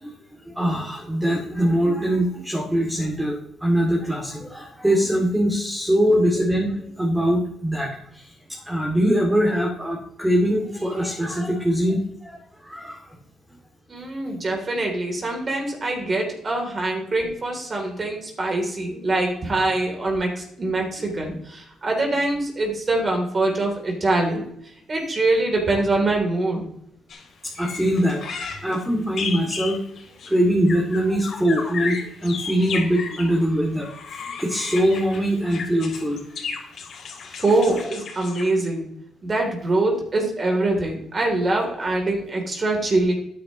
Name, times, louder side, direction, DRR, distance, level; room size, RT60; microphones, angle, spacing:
voice 1, 0.5-8.3 8.6-12.4 12.6-13.1 27.6-29.8 30.3-33.9 34.4-36.4, equal, 10° right, -2 dB, 2.8 m, -22 dB
voice 2, 13.9-24.5 24.9-26.7 37.4-38.9 39.2-43.1, right 2 dB, 35° right, 1 dB, 3.4 m, -24 dB
sound 1, 27.1-27.2 27.5-33.4 33.8-38.6, left 5 dB, 65° left, 2.8 m, -34 dB
12.0 x 9.7 x 3.2 m, 0.73 s
cardioid pair, 90°, 0 cm